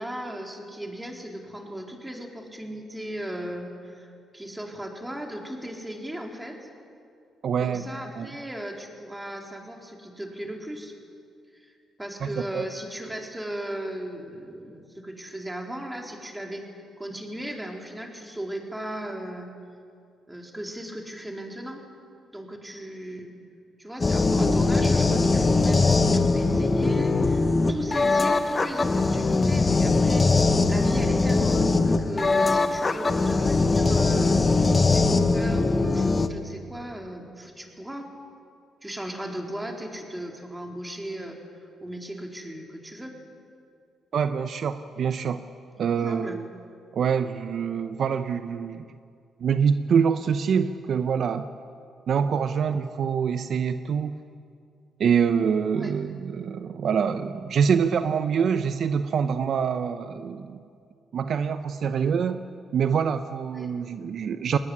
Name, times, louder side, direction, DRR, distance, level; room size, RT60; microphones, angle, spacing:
voice 1, 0.0-6.7 7.6-10.9 11.5-19.5 20.3-21.9 22.3-23.3 23.8-38.1 38.8-41.4 41.8-43.2 46.1-46.4 55.8-55.9 63.5-63.7, right 1 dB, 10° right, 1 dB, 4.1 m, -37 dB
voice 2, 7.4-7.8 8.2-8.3 12.2-12.6 24.5-24.6 44.1-45.4 45.8-46.5 46.9-48.8 49.4-51.5 52.1-54.1 55.0-60.6 61.1-62.4 62.7-64.6, right 7 dB, 60° right, 10 dB, 0.8 m, -25 dB
sound 1, 24.0-36.3, left 3 dB, 30° left, 1.3 m, -21 dB
22.5 x 19.5 x 10.0 m, 2.4 s
cardioid pair, 90°, 0 cm